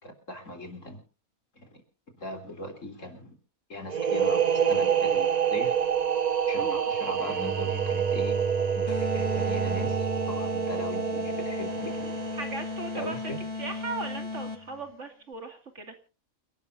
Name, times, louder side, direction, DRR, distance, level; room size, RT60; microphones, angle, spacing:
voice 1, 0.0-1.0 1.5-1.8 2.1-3.4 3.7-5.8 6.5-8.4 8.7-12.3 12.9-13.4, left 1 dB, 65° left, 5 dB, 4.0 m, -40 dB
sound 1, 3.9-13.4, right 7 dB, 35° right, 1.0 m, -27 dB
Bowed string instrument, 7.2-12.4, right 6 dB, 5° right, 2.5 m, -35 dB
sound 2, 8.9-14.8, left 3 dB, 20° left, 1.3 m, -36 dB
voice 2, 12.3-15.9, right 3 dB, 60° right, 5 dB, 2.8 m, -38 dB
28.5 x 12.0 x 2.7 m, 0.34 s
omnidirectional pair, 1.4 m